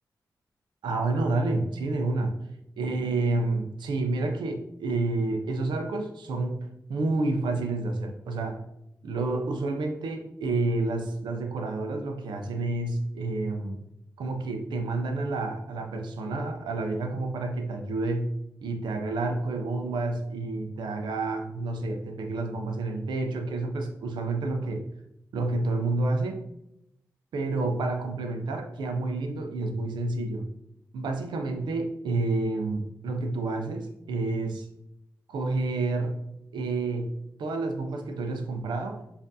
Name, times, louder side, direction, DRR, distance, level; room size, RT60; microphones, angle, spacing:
voice 1, 0.8-2.4 2.8-8.6 9.0-13.8 14.2-18.3 18.6-24.8 25.3-26.4 27.3-30.5 30.9-34.7 35.3-36.2 36.5-37.1 37.4-39.0, right 2 dB, 90° right, 4 dB, 0.5 m, -29 dB
5.1 x 2.5 x 2.6 m, 0.82 s
supercardioid pair, 40°, 8 cm